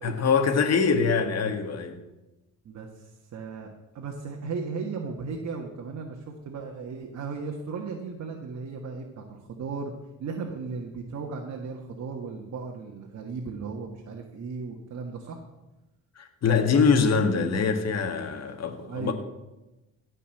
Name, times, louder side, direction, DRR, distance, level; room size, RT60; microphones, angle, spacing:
voice 1, 0.0-2.0 16.2-19.1, left 5 dB, 60° left, 7 dB, 1.9 m, -24 dB
voice 2, 2.7-9.9 10.2-15.4 18.9-19.1, right 4 dB, 60° right, 1 dB, 1.7 m, -36 dB
16.5 x 5.5 x 7.8 m, 1.0 s
cardioid pair, 90°, 30 cm